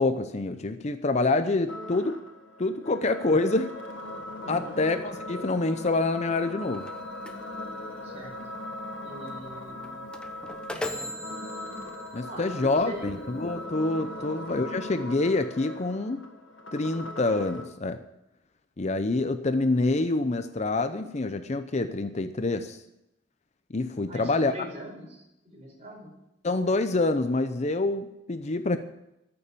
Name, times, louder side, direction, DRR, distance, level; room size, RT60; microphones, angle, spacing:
voice 1, 0.0-2.2 2.6-3.7 4.5-6.9 12.1-16.2 16.7-18.0 18.8-22.8 23.7-24.5 26.4-28.8, left 2 dB, 35° left, 10 dB, 0.6 m, -26 dB
sound 1, 1.7-17.7, left 1 dB, 90° left, 1.7 m, -39 dB
voice 2, 4.4-4.8 8.0-8.4 9.0-10.1 10.6-11.4 12.3-13.2 14.3-14.4 24.1-26.1, equal, 35° right, -1 dB, 4.9 m, -42 dB
sound 2, 6.6-13.6, left 1 dB, 5° left, 0.9 m, -42 dB
14.0 x 6.9 x 8.5 m, 0.88 s
head